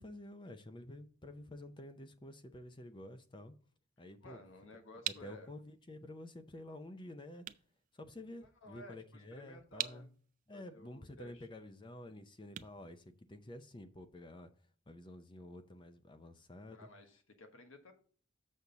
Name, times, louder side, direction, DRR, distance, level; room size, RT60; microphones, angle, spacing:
voice 1, 0.0-3.5 4.0-4.4 5.1-7.4 7.9-10.1 10.5-14.5 14.9-16.9, left 1 dB, 25° left, 0.6 m, -50 dB
voice 2, 4.2-5.5 8.4-10.1 10.5-11.7 16.7-17.9, left 1 dB, 75° left, 1.3 m, -55 dB
sound 1, 4.4-13.8, right 11 dB, 40° right, 0.4 m, -47 dB
7.1 x 6.4 x 3.9 m
head